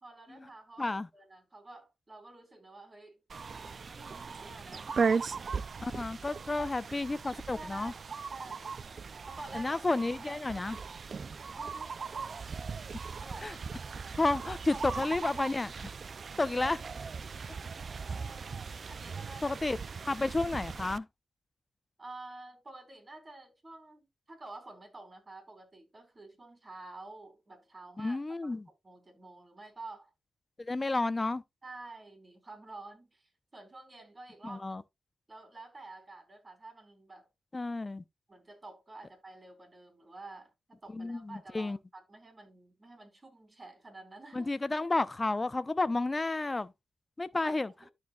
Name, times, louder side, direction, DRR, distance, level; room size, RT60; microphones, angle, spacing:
voice 1, 0.0-5.2 6.6-6.7 7.5-8.7 9.3-9.8 10.3-10.7 11.5-12.5 13.2-13.6 14.7-14.9 16.4-16.5 18.1-19.6 22.0-28.6 28.8-30.1 30.8-30.9 31.6-34.6 35.3-37.3 38.3-44.5 47.4-47.9, right 2 dB, 35° right, 3.9 m, -50 dB
sound 1, 3.3-21.0, right 5 dB, 55° right, 0.5 m, -38 dB
voice 2, 5.8-7.9 9.5-10.8 13.4-13.5 14.2-15.7 16.4-16.8 19.4-19.8 20.0-21.1 28.0-28.6 30.6-31.4 34.4-34.8 37.5-38.0 40.9-41.8 44.3-46.7 47.2-47.7, left 2 dB, 30° left, 0.8 m, -31 dB
12.5 x 4.6 x 2.4 m
cardioid pair, 50°, 0 cm